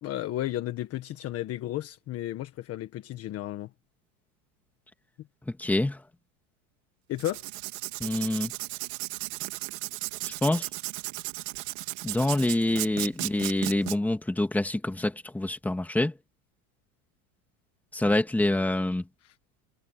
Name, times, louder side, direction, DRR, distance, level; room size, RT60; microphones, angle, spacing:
voice 1, 0.0-3.7 7.1-7.4 19.2-19.3, left 14 dB, 35° left, 1.4 m, -33 dB
voice 2, 5.5-6.0 8.0-8.5 10.2-10.7 12.0-16.2 17.9-19.1, left 1 dB, 5° left, 2.3 m, -26 dB
Writing, 7.1-14.0, right 23 dB, 70° right, 3.8 m, -35 dB
supercardioid pair, 155°, 44 cm